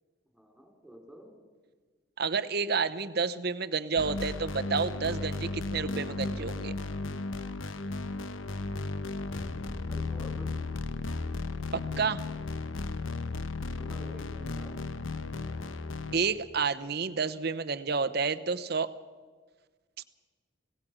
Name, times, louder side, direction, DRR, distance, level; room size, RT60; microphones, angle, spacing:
voice 1, 0.3-1.3 9.8-10.7 13.7-14.8, equal, ahead, 1 dB, 4.2 m, -49 dB
voice 2, 2.2-6.7 11.7-12.2 16.1-18.9, right 5 dB, 50° right, 11 dB, 0.8 m, -30 dB
sound 1, 4.0-16.2, left 3 dB, 80° left, 0.9 m, -35 dB
25.5 x 17.0 x 6.2 m, 1.5 s
head